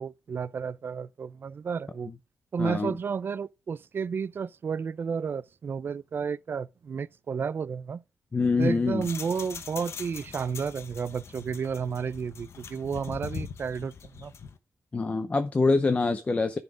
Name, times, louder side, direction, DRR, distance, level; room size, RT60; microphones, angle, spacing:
voice 1, 0.0-2.1 2.5-8.0 8.6-14.3, right 6 dB, 45° right, 0.4 m, -32 dB
voice 2, 2.6-3.0 8.3-9.0 14.9-16.6, left 3 dB, 25° left, 0.6 m, -25 dB
sound 1, 8.4-14.6, left 6 dB, 55° left, 0.8 m, -42 dB
10.5 x 4.1 x 4.8 m
wide cardioid pair, 125°, 5 cm